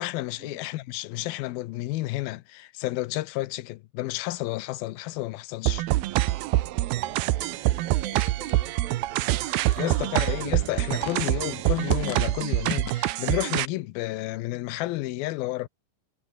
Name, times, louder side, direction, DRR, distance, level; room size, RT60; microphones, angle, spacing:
voice 1, 0.0-5.9 9.8-15.7, left 18 dB, 90° left, 2.6 m, -31 dB
sound 1, 5.7-13.7, right 16 dB, 90° right, 2.9 m, -25 dB
voice 2, 6.5-10.4 10.8-11.2, right 7 dB, 70° right, 4.9 m, -46 dB
sound 2, 7.5-13.3, left 12 dB, 70° left, 2.9 m, -43 dB
omnidirectional pair, 4.2 m